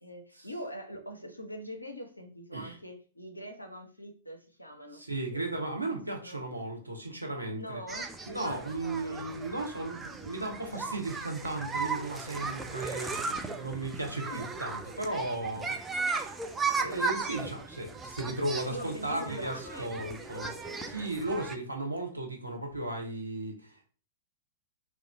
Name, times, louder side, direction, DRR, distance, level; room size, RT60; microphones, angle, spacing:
voice 1, 0.0-5.0 5.3-5.8 6.1-6.4 7.5-8.1 8.4-8.6 9.0-9.3 14.2-14.5 16.7-17.1 18.7-20.9, equal, 85° left, 4 dB, 0.7 m, -43 dB
voice 2, 4.9-7.8 8.3-15.8 16.1-20.5 20.8-23.9, right 2 dB, 85° right, 2 dB, 0.8 m, -36 dB
sound 1, 7.9-21.5, right 4 dB, 10° right, 0.4 m, -36 dB
3.0 x 2.5 x 3.3 m, 0.41 s
figure-of-eight pair, 105°, 0 cm